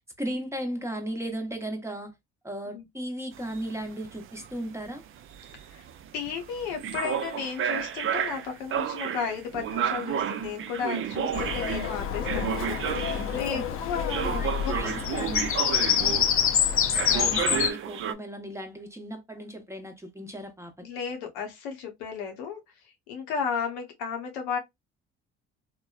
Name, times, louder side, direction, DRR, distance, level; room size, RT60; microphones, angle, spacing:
voice 1, 0.2-2.1 2.4-5.0 13.1-13.7 14.3-15.5 17.1-20.7, right 1 dB, 10° right, 0.8 m, -36 dB
sound 1, 3.3-13.5 14.1-16.6 16.9-18.1, right 9 dB, 40° right, 0.4 m, -32 dB
voice 2, 6.1-15.3 16.0-16.2 20.8-24.6, left 6 dB, 85° left, 0.8 m, -34 dB
Bird vocalization bird call bird song, 11.3-17.7, left 8 dB, 45° left, 0.5 m, -27 dB
2.8 x 2.1 x 2.3 m
hypercardioid pair, 60°, 33 cm